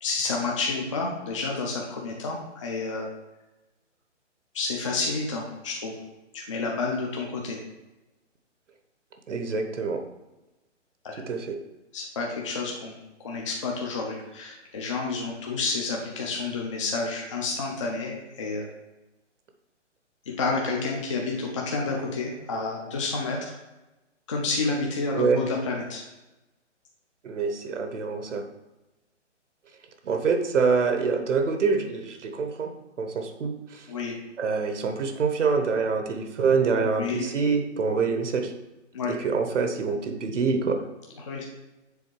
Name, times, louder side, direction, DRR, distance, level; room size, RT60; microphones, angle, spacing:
voice 1, 0.0-3.1 4.5-5.9 6.3-7.6 11.0-11.3 11.9-13.0 13.2-18.7 20.3-23.6 24.3-26.0 33.9-34.2 36.8-37.3 38.9-39.1 41.2-41.4, left 3 dB, 25° left, -1 dB, 0.5 m, -30 dB
voice 2, 9.3-10.0 11.2-11.6 25.1-25.4 27.2-28.4 30.0-32.7 33.0-33.9 34.4-38.5 39.1-40.8, right 5 dB, 75° right, 6 dB, 1.0 m, -25 dB
7.0 x 3.9 x 4.6 m, 1.0 s
hypercardioid pair, 160°, 37 cm